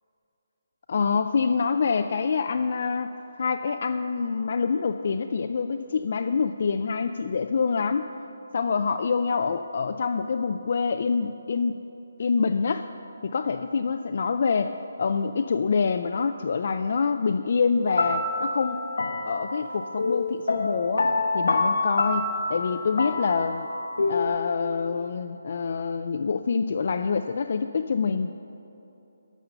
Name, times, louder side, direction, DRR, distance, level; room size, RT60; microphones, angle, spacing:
voice 1, 0.9-3.1 3.4-8.0 8.5-11.8 12.2-12.9 13.2-14.7 15.0-18.8 19.3-21.1 21.3-23.7 24.1-28.3, left 5 dB, 50° left, 8 dB, 0.3 m, -26 dB
sound 1, 17.9-24.3, left 3 dB, 85° left, 1.0 m, -27 dB
12.0 x 5.4 x 6.8 m, 2.9 s
hypercardioid pair, 165°, 0 cm